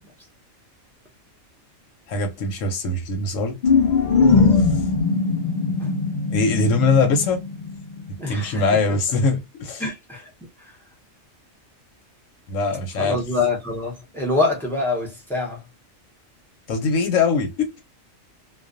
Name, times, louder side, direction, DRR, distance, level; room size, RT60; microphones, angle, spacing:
voice 1, 2.1-3.6 4.7-4.8 6.3-7.4 8.3-9.9 12.5-13.2 16.7-17.8, left 3 dB, 80° left, 1.0 m, -22 dB
sound 1, 3.6-8.2, left 4 dB, 60° left, 0.5 m, -20 dB
voice 2, 8.2-8.6 8.9-9.0 9.8-10.3 10.6-10.7 13.0-15.6, left 3 dB, 5° left, 0.5 m, -25 dB
2.4 x 2.2 x 2.4 m
omnidirectional pair, 1.3 m